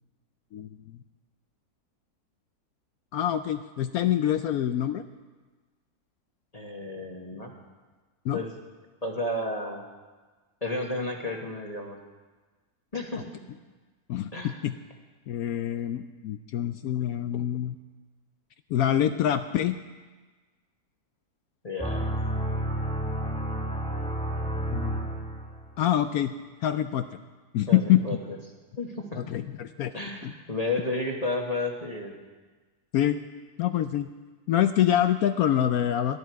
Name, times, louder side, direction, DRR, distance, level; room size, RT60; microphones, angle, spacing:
voice 1, 3.1-5.0 8.2-8.4 14.1-14.7 15.3-17.8 18.7-19.8 24.7-25.1 25.8-26.3 26.6-27.0 27.5-28.0 29.2-29.9 30.2-30.3 32.9-33.2 33.6-34.1 34.5-36.2, left 11 dB, 70° left, 9 dB, 1.0 m, -25 dB
voice 2, 6.5-7.5 8.3-8.5 9.0-9.8 10.6-12.0 12.9-13.3 14.3-14.6 21.6-22.1 27.7-28.4 28.8-29.3 29.9-32.1, left 2 dB, 25° left, 1 dB, 1.4 m, -32 dB
sound 1, 21.8-25.7, right 1 dB, 5° left, 1.8 m, -30 dB
19.0 x 12.0 x 4.6 m, 1.3 s
omnidirectional pair, 1.7 m